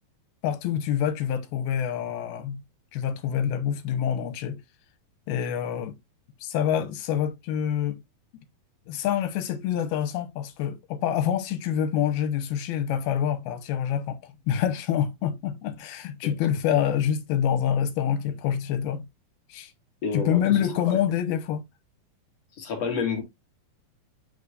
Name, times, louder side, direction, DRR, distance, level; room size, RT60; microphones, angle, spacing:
voice 1, 0.4-2.6 2.9-4.6 5.3-6.0 6.4-8.0 8.9-19.1 19.5-19.7 20.1-21.6, left 9 dB, 85° left, 3.0 m, -26 dB
voice 2, 20.0-21.0 22.5-23.2, left 5 dB, 50° left, 2.5 m, -30 dB
8.3 x 5.1 x 2.4 m
omnidirectional pair, 4.4 m